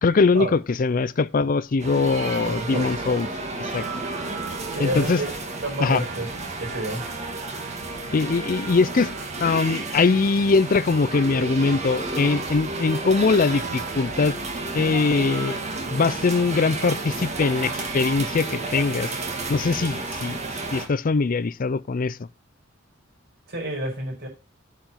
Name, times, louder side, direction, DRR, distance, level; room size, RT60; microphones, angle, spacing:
voice 1, 0.0-3.3 3.6-3.8 4.8-5.2 5.8-6.0 8.1-14.4 14.7-15.6 15.9-19.1 19.5-20.4 20.7-22.2, left 4 dB, 45° left, 0.5 m, -22 dB
sound 1, 1.8-20.9, right 3 dB, 35° right, 1.7 m, -31 dB
voice 2, 2.4-3.0 4.7-5.3 5.6-6.3 6.6-7.0 23.5-24.3, right 1 dB, 60° right, 5.2 m, -29 dB
8.9 x 5.1 x 5.7 m
head